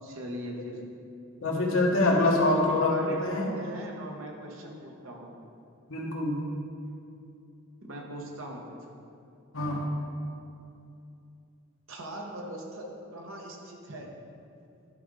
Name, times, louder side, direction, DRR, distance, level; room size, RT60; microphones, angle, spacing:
voice 1, 0.0-0.8 2.9-5.3 7.8-8.8 11.9-14.1, right 1 dB, 70° right, 0 dB, 1.2 m, -40 dB
voice 2, 1.4-3.5 5.9-6.4 9.5-10.0, left 2 dB, 75° left, -1 dB, 1.2 m, -25 dB
11.0 x 5.1 x 3.8 m, 2.6 s
head